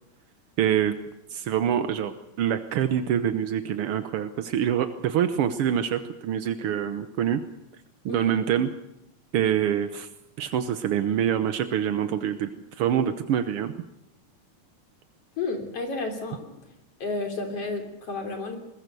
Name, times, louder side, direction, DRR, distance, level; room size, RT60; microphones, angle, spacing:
voice 1, 0.6-1.0 1.3-7.4 8.0-8.7 9.3-10.1 10.4-13.7, right 9 dB, 70° right, 9 dB, 1.3 m, -25 dB
voice 2, 15.4-16.5 17.0-18.6, left 3 dB, 45° left, 4 dB, 4.1 m, -31 dB
22.0 x 21.0 x 6.9 m, 0.88 s
omnidirectional pair, 3.7 m